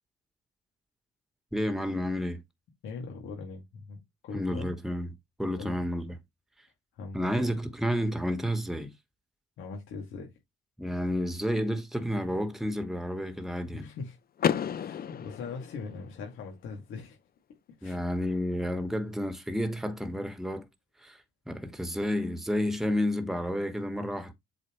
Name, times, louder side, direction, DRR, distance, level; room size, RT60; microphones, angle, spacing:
voice 1, 1.5-2.4 4.3-5.1 5.4-6.1 7.1-8.9 10.8-13.9 17.8-20.7 21.0-21.2 21.5-24.3, equal, ahead, 1.3 m, -30 dB
voice 2, 2.8-4.7 5.6-5.8 6.9-7.5 9.6-10.3 13.6-14.2 14.7-17.2 17.8-18.0, left 4 dB, 80° left, 2.3 m, -41 dB
Car / Door, 14.4-16.3, left 8 dB, 50° left, 0.7 m, -31 dB
7.7 x 4.2 x 3.1 m
cardioid pair, 90°, 20 cm